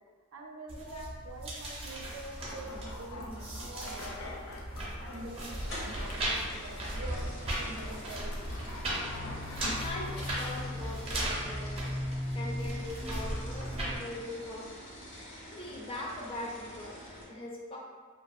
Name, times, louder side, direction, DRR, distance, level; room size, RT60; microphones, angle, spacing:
voice 1, 0.3-4.1 5.0-8.5, right 2 dB, 80° right, 1 dB, 0.4 m, -45 dB
sound 1, 0.7-14.0, equal, 30° right, 0.5 m, -36 dB
sound 2, 2.4-11.0, left 2 dB, 90° left, 0.4 m, -45 dB
sound 3, 5.7-17.2, equal, 65° left, 0.8 m, -47 dB
voice 2, 9.7-14.8 15.1-17.8, left 1 dB, 25° left, -3 dB, 0.4 m, -42 dB
2.4 x 2.3 x 2.4 m, 1.5 s
head